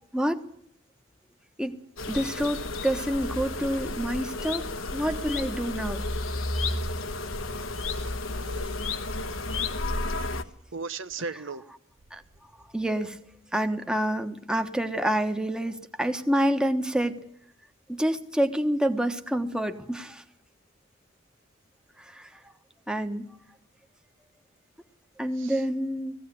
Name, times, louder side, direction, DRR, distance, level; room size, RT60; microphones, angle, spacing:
voice 1, 0.1-0.4 1.6-1.8 2.1-4.7 4.9-6.0 9.3-9.4 12.1-12.2 12.7-13.2 13.5-17.2 17.9-20.2 22.0-22.3 22.9-23.4 25.2-26.1, equal, 5° right, 1.3 m, -28 dB
sound 1, 2.0-10.4, left 2 dB, 85° left, 1.4 m, -32 dB
voice 2, 7.9-8.8 10.7-11.6 25.4-25.6, right 4 dB, 70° right, 0.9 m, -37 dB
20.0 x 16.0 x 9.7 m
head